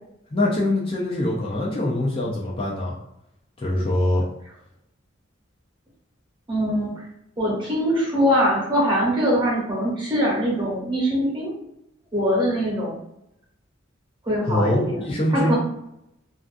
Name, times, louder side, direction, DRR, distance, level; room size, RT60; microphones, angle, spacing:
voice 1, 0.3-2.9 3.6-4.3 14.4-15.5, left 1 dB, 30° left, -5 dB, 0.4 m, -23 dB
voice 2, 6.5-6.9 7.4-11.5 12.1-13.0 14.2-15.0 15.3-15.6, equal, 25° right, -5 dB, 1.0 m, -22 dB
2.5 x 2.3 x 2.5 m, 0.81 s
head